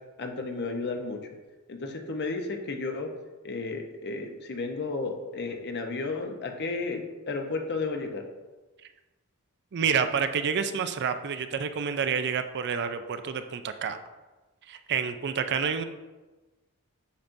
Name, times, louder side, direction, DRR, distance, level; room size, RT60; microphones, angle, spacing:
voice 1, 0.2-1.3 1.7-3.1 3.4-8.2, left 3 dB, 50° left, 4 dB, 0.8 m, -33 dB
voice 2, 9.7-14.0 14.7-15.8, right 6 dB, 50° right, 9 dB, 0.4 m, -28 dB
8.4 x 5.9 x 2.6 m, 1.2 s
head